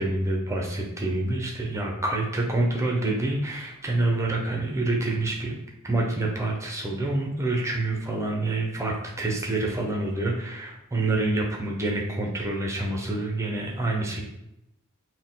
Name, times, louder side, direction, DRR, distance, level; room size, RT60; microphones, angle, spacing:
voice 1, 0.0-5.6 5.8-14.2, right 2 dB, 15° right, -1 dB, 0.7 m, -27 dB
4.3 x 2.2 x 3.8 m, 0.84 s
head